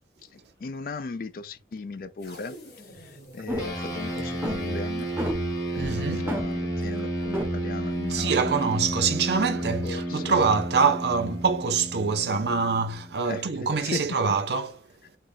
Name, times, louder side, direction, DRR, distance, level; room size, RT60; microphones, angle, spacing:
voice 1, 0.2-5.1 5.7-8.7 9.6-10.4 13.2-14.1, left 4 dB, 55° left, 0.4 m, -37 dB
sound 1, 2.2-6.5, equal, 75° left, 1.4 m, -48 dB
sound 2, 3.4-3.9 4.2-4.6 5.2-5.4 5.8-6.0 6.3-6.5 7.0-7.1 7.3-7.5, equal, 15° right, 0.6 m, -29 dB
sound 3, 3.6-13.3, right 1 dB, 20° left, 1.0 m, -31 dB
voice 2, 5.8-6.3 8.1-14.8, right 5 dB, 75° right, 0.6 m, -25 dB
3.8 x 2.2 x 3.5 m
head